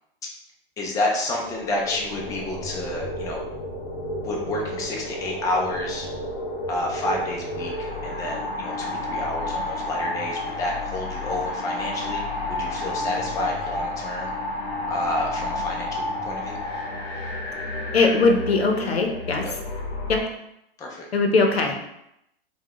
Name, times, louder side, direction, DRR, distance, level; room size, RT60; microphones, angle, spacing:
voice 1, 0.8-3.4 4.2-6.1 6.7-12.2 12.5-14.3 14.9-16.6 19.4-19.5 20.8-21.1, left 2 dB, 10° left, -1 dB, 0.4 m, -29 dB
sound 1, 1.3-20.2, left 1 dB, 50° left, 1.1 m, -31 dB
voice 2, 17.9-19.4 20.1-20.2 21.1-21.8, left 3 dB, 85° left, 3 dB, 0.7 m, -20 dB
3.5 x 2.2 x 2.9 m, 0.80 s
hypercardioid pair, 110°, 30 cm